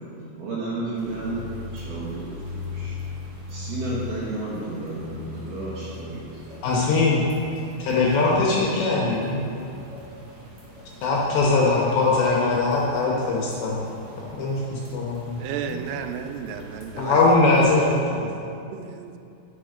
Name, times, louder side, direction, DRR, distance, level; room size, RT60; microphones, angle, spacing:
voice 1, 0.1-1.4 1.7-2.3 2.7-3.0 3.5-6.3 6.7-6.9, right 2 dB, 70° right, -7 dB, 2.4 m, -32 dB
sound 1, 0.9-18.0, left 3 dB, 50° right, 1.8 m, -40 dB
voice 2, 6.6-7.2 7.8-9.5 11.0-13.8 14.3-15.4 15.7-15.8 17.0-18.3, left 3 dB, 75° left, -4 dB, 2.7 m, -21 dB
voice 3, 15.4-17.3 18.7-19.2, right 7 dB, 85° right, 7 dB, 3.2 m, -33 dB
10.0 x 6.5 x 5.1 m, 2.6 s
omnidirectional pair, 5.9 m